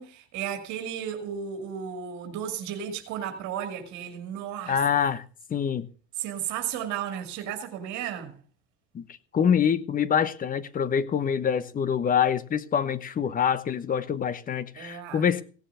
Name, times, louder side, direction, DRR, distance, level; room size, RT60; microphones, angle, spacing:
voice 1, 0.0-4.8 6.2-8.3 14.8-15.3, right 9 dB, 60° right, 2.4 m, -34 dB
voice 2, 4.7-5.2 5.5-5.9 8.9-9.1 9.3-15.4, left 8 dB, 25° left, 1.0 m, -25 dB
17.0 x 7.3 x 6.9 m
cardioid pair, 130°, 32 cm